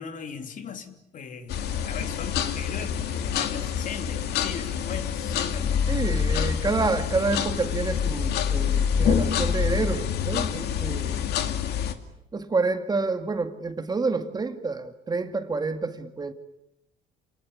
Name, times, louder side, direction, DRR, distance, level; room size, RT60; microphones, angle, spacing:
voice 1, 0.0-6.0, left 6 dB, 50° left, 2.9 m, -38 dB
sound 1, 1.5-11.9, left 8 dB, 75° left, 2.4 m, -26 dB
voice 2, 5.9-11.2 12.3-16.3, right 3 dB, 25° right, 2.2 m, -28 dB
28.0 x 20.0 x 9.8 m
cardioid pair, 110°, 17 cm